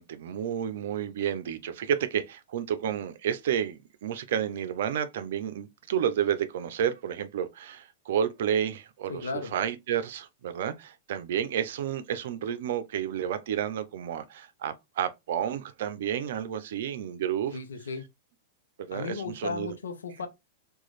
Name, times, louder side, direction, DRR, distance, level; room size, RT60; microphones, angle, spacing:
voice 1, 0.0-17.6 18.8-19.7, right 9 dB, 70° right, 0.5 m, -31 dB
voice 2, 9.1-9.5 17.5-18.1 18.9-20.3, left 4 dB, 85° left, 0.7 m, -35 dB
3.0 x 2.4 x 3.9 m
hypercardioid pair, 110°, 0 cm